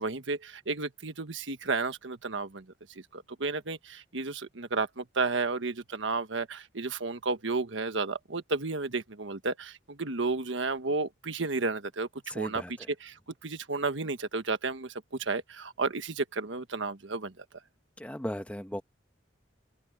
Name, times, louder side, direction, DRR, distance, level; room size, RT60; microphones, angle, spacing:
voice 1, 0.0-2.6 3.1-12.1 12.3-12.6 13.0-13.2 13.4-17.4, right 3 dB, 80° right, 1.4 m, -32 dB
voice 2, 12.3-12.9 18.0-18.8, equal, 5° left, 1.2 m, -36 dB
head